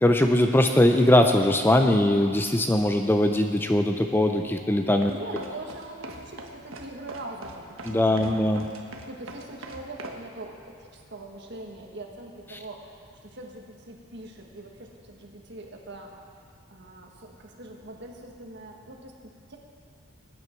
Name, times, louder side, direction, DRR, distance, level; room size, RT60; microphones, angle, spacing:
voice 1, 0.0-5.1 7.8-8.6, left 1 dB, 10° left, 5 dB, 0.4 m, -21 dB
sound 1, 5.0-10.2, right 2 dB, 80° right, 1.3 m, -40 dB
voice 2, 5.1-8.7 9.1-16.2 16.7-19.6, right 2 dB, 55° right, 1 dB, 1.6 m, -42 dB
20.5 x 9.6 x 4.5 m, 2.2 s
head